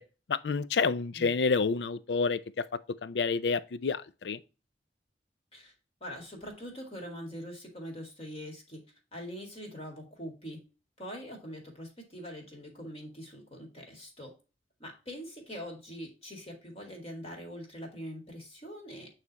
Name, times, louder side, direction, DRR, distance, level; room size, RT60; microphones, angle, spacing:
voice 1, 0.3-2.7 3.0-4.4, left 4 dB, 80° left, 0.5 m, -29 dB
voice 2, 6.0-8.8 9.1-10.6 11.0-14.3 14.8-19.1, equal, 35° left, 2.1 m, -43 dB
8.4 x 3.2 x 4.0 m
head